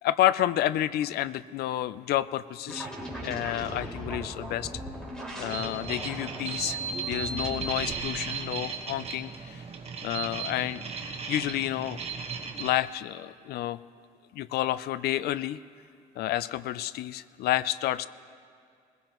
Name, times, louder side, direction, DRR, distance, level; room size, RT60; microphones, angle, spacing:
voice 1, 0.0-2.9 3.2-4.7 5.4-9.6 10.0-12.0 12.6-13.8 14.3-15.6 16.2-18.1, left 13 dB, 70° left, 17 dB, 0.4 m, -30 dB
sound 1, 2.7-8.0, right 1 dB, 5° left, 3.3 m, -38 dB
sound 2, 5.5-12.7, right 5 dB, 35° right, 1.3 m, -36 dB
20.5 x 16.0 x 3.0 m, 2.2 s
cardioid pair, 110°, 17 cm